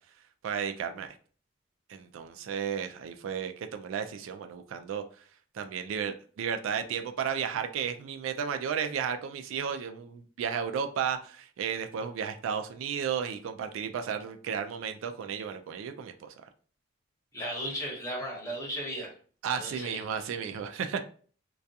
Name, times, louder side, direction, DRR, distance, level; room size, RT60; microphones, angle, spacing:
voice 1, 0.4-1.1 1.9-5.0 5.5-16.1 16.4-16.5 19.4-21.0, right 7 dB, 90° right, 0.3 m, -33 dB
voice 2, 17.3-19.1 19.5-20.0, equal, 15° left, 0.8 m, -35 dB
2.3 x 2.3 x 2.7 m
head